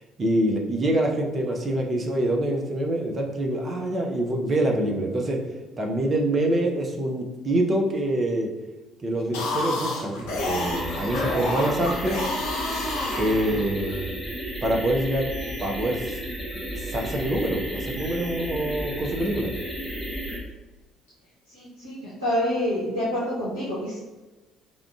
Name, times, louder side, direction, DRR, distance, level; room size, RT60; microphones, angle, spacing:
voice 1, 0.2-5.4 5.8-8.5 9.0-12.3 13.2-14.2 14.6-15.3 15.6-16.2 16.8-19.5, right 1 dB, 30° right, 1 dB, 0.6 m, -25 dB
sound 1, 9.2-13.9, left 2 dB, 65° left, 0.6 m, -29 dB
sound 2, 10.4-20.4, equal, 10° left, 0.7 m, -33 dB
voice 2, 21.5-24.0, equal, 85° right, -11 dB, 0.8 m, -27 dB
5.0 x 2.3 x 2.3 m, 1.2 s
figure-of-eight pair, 50°, 0 cm